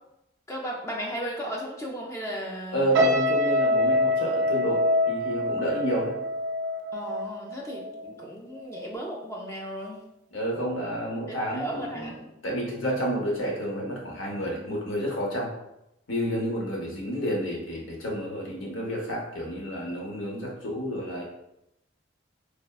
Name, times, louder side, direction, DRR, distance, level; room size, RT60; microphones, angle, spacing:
voice 1, 0.5-2.8 6.9-10.0 11.3-12.3, equal, 15° left, -1 dB, 0.4 m, -35 dB
voice 2, 2.7-6.2 10.3-12.1 12.4-15.5 16.1-21.2, equal, 85° left, -2 dB, 0.8 m, -30 dB
sound 1, 2.9-8.2 8.6-8.9, left 1 dB, 60° right, 0.4 m, -25 dB
3.3 x 2.1 x 2.3 m, 0.85 s
head